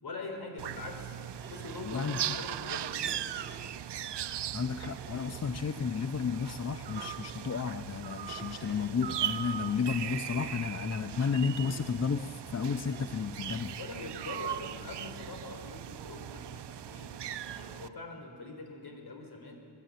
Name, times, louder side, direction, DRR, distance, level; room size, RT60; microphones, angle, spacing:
voice 1, 0.0-1.2 1.5-3.4 13.8-19.5, left 3 dB, 60° left, 3 dB, 4.9 m, -43 dB
sound 1, 0.6-17.9, right 10 dB, 70° right, 0.8 m, -39 dB
sound 2, 1.3-1.9 2.9-3.9 4.8-5.5 6.8-7.5 8.3-9.0 9.9-10.6 11.5-12.0 12.8-13.3, right 3 dB, 25° right, 1.5 m, -51 dB
voice 2, 1.8-2.2 4.5-13.8, left 6 dB, 40° left, 9 dB, 0.7 m, -32 dB
22.0 x 21.5 x 9.2 m, 2.3 s
wide cardioid pair, 105°, 42 cm